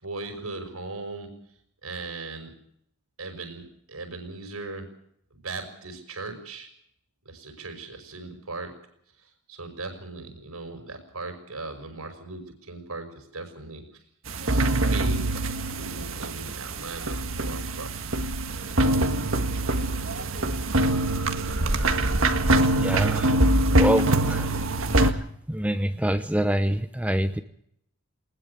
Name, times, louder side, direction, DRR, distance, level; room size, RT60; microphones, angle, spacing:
voice 1, 0.0-1.3 1.8-2.5 3.2-4.9 5.4-6.7 7.3-8.7 9.2-13.9 14.4-15.3 15.7-18.0, right 3 dB, 90° right, 6 dB, 5.6 m, -38 dB
sound 1, 14.3-25.1, right 1 dB, 65° right, 1.8 m, -24 dB
voice 2, 22.7-24.7 24.9-27.4, right 1 dB, 5° right, 9 dB, 0.8 m, -27 dB
21.0 x 20.5 x 6.9 m, 0.70 s
head